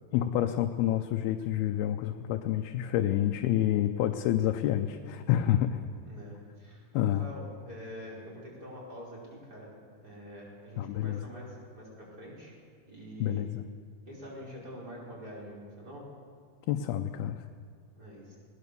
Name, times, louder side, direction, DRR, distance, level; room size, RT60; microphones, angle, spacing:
voice 1, 0.1-5.8 6.9-7.3 10.8-11.2 13.2-13.7 16.7-17.4, left 12 dB, 85° left, 5 dB, 2.7 m, -28 dB
voice 2, 6.0-6.9 7.2-9.7 9.9-12.5 12.9-13.5 14.1-16.1 18.0-18.4, equal, 25° right, -5 dB, 5.5 m, -45 dB
20.5 x 19.5 x 6.9 m, 2.1 s
omnidirectional pair, 4.4 m